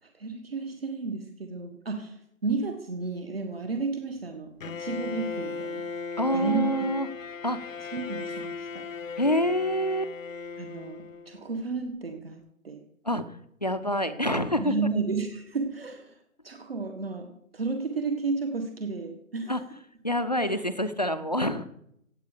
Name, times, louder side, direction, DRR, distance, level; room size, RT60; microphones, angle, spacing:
voice 1, 0.0-5.8 6.3-6.8 7.9-8.9 10.6-12.8 14.6-16.2 16.4-19.5, right 4 dB, 45° right, 6 dB, 1.7 m, -32 dB
Bowed string instrument, 4.6-11.5, left 4 dB, 70° left, 0.8 m, -37 dB
voice 2, 6.2-7.1 7.4-7.8 9.2-10.1 13.0-14.7 19.5-19.6 20.0-21.7, equal, 30° left, 12 dB, 0.6 m, -27 dB
16.5 x 8.4 x 6.6 m, 0.73 s
hypercardioid pair, 175°, 41 cm